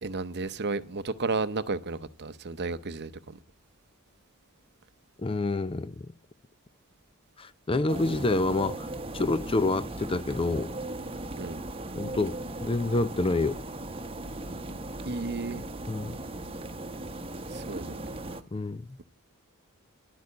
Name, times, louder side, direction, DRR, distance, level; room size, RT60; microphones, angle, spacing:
voice 1, 0.0-3.4 11.3-11.6 15.1-15.6 17.5-18.1, right 3 dB, 50° right, 0.8 m, -33 dB
voice 2, 5.2-5.9 7.4-10.7 11.9-12.3 12.6-13.6 15.9-16.2 18.5-19.0, left 2 dB, 25° left, 0.5 m, -28 dB
sound 1, 7.9-18.4, right 2 dB, 25° right, 1.0 m, -38 dB
11.5 x 8.3 x 9.7 m
head